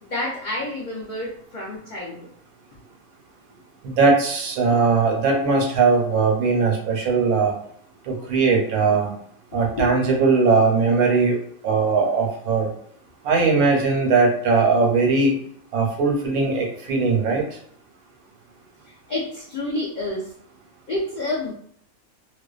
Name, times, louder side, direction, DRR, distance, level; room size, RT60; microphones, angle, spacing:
voice 1, 0.0-2.3 9.5-9.9 19.1-20.3 20.9-21.5, left 2 dB, 75° left, -5 dB, 0.4 m, -29 dB
voice 2, 3.8-7.5 8.0-9.1 9.5-11.4 11.6-12.7 13.2-15.4 15.7-17.4, right 4 dB, 90° right, 0 dB, 1.2 m, -19 dB
2.5 x 2.2 x 2.3 m, 0.63 s
omnidirectional pair, 1.5 m